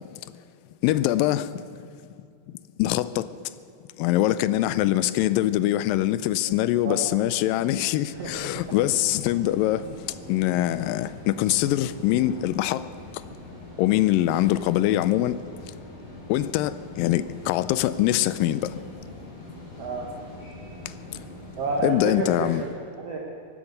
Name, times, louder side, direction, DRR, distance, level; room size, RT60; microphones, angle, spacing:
voice 1, 0.8-1.7 2.8-3.3 4.0-9.9 10.3-12.9 13.1-13.2 13.8-15.4 16.3-18.8 21.8-22.6, left 14 dB, 85° left, 2.2 m, -23 dB
sound 1, 8.1-22.6, left 2 dB, 65° left, 6.5 m, -42 dB
voice 2, 8.1-8.8 19.8-20.1 21.6-23.2, right 3 dB, 55° right, 1.9 m, -30 dB
23.0 x 8.8 x 6.6 m
omnidirectional pair, 4.1 m